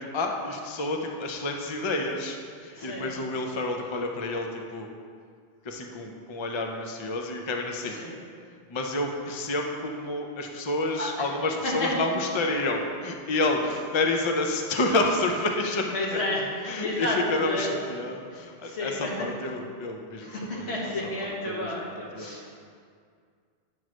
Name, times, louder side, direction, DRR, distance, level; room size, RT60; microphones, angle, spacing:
voice 1, 0.0-4.9 5.6-8.0 8.7-16.2 16.6-21.8 22.1-22.4, left 2 dB, 35° left, 2 dB, 0.5 m, -29 dB
voice 2, 2.8-3.1 8.0-8.1 11.0-11.1 11.6-11.9 15.9-16.4 16.8-17.2 17.4-17.7 18.6-19.1 20.2-22.5, left 2 dB, 80° left, -5 dB, 1.8 m, -31 dB
9.0 x 3.1 x 6.2 m, 2.1 s
omnidirectional pair, 1.1 m